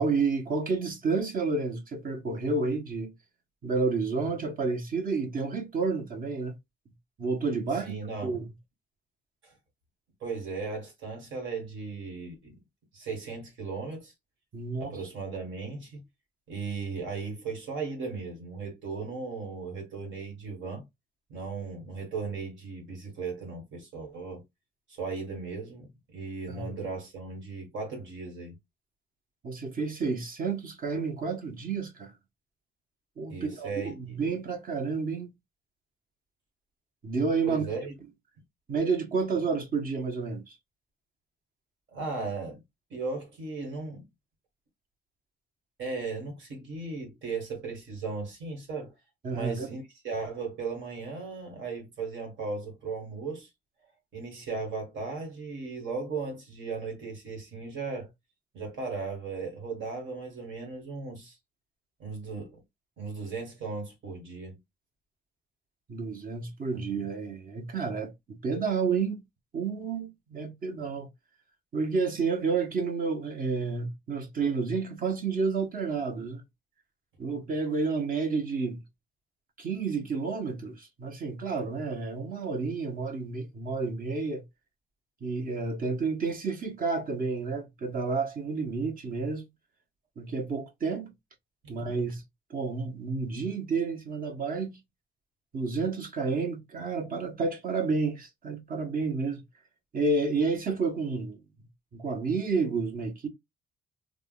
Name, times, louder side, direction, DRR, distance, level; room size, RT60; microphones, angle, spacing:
voice 1, 0.0-3.1 3.6-6.5 7.2-8.0 8.2-8.5 14.5-15.0 26.5-26.7 29.4-32.1 33.2-35.3 37.0-37.7 38.7-40.6 49.2-49.7 65.9-69.2 69.5-71.1 71.7-76.4 77.2-78.8 79.6-84.4 85.2-89.4 90.2-91.1 91.7-92.2 92.5-94.8 95.5-99.4 99.9-101.4 101.9-103.3, right 4 dB, 45° right, 1.1 m, -30 dB
voice 2, 7.7-8.4 9.4-9.6 10.2-12.6 12.9-14.1 14.8-16.0 16.5-20.9 21.3-24.4 24.9-28.6 33.3-34.2 37.5-37.9 41.9-42.6 42.9-44.1 45.8-48.9 49.3-53.5 54.1-58.1 58.5-61.4 62.0-62.6 63.0-64.6 91.6-91.8, right 4 dB, 75° right, 1.7 m, -36 dB
3.5 x 2.4 x 2.4 m
cardioid pair, 90°, 20 cm